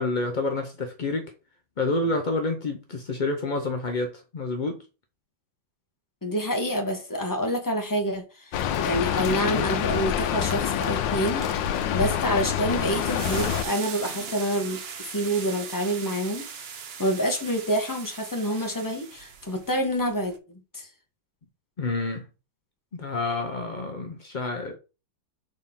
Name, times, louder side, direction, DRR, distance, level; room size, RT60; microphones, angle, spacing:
voice 1, 0.0-1.3 1.8-4.8 21.8-22.3 22.9-24.8, left 2 dB, 65° left, 0.4 m, -28 dB
voice 2, 6.2-11.4 11.9-16.5 17.0-20.3 20.7-20.9, equal, 15° left, 1.0 m, -27 dB
Rain, 8.5-13.6, left 9 dB, 90° left, 1.4 m, -26 dB
sound 1, 9.9-10.0 10.3-20.4, right 6 dB, 65° right, 0.6 m, -40 dB
6.5 x 4.2 x 3.7 m
omnidirectional pair, 2.0 m